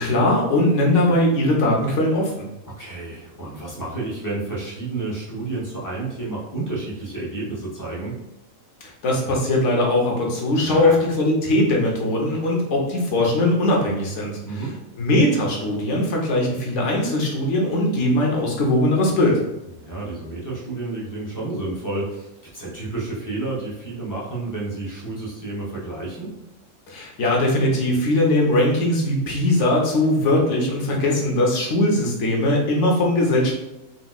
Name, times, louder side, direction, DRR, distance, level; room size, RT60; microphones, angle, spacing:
voice 1, 0.0-2.5 9.0-14.4 15.0-19.4 26.9-33.5, left 1 dB, 65° left, -1 dB, 1.1 m, -20 dB
voice 2, 2.7-8.2 10.6-11.0 14.4-14.8 19.8-26.3, right 2 dB, 25° left, -6 dB, 0.4 m, -30 dB
4.1 x 2.2 x 2.3 m, 0.91 s
omnidirectional pair, 1.4 m